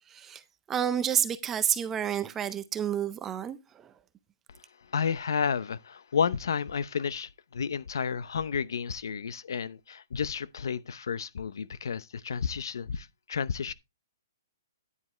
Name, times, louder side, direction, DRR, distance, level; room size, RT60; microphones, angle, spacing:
voice 1, 0.1-0.4 0.7-3.9, right 9 dB, 10° right, 0.5 m, -30 dB
voice 2, 4.9-13.7, left 6 dB, 70° left, 0.7 m, -31 dB
9.9 x 9.5 x 3.2 m
hypercardioid pair, 175°, 2 cm